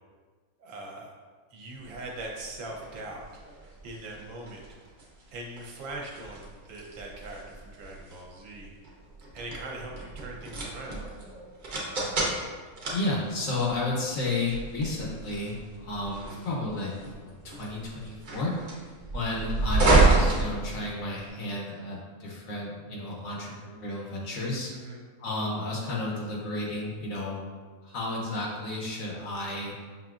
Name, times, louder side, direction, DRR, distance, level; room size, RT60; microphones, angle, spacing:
voice 1, 0.6-1.1 1.5-3.2 3.8-4.6 5.3-8.7 9.3-11.1 24.7-25.0, right 2 dB, 65° right, -1 dB, 1.0 m, -41 dB
sound 1, 1.9-21.3, right 2 dB, 45° right, 0.6 m, -30 dB
voice 2, 12.9-18.6 19.1-24.7 25.2-27.4 27.8-29.7, left 2 dB, 65° left, -3 dB, 1.1 m, -32 dB
5.6 x 2.6 x 2.4 m, 1.5 s
omnidirectional pair, 1.7 m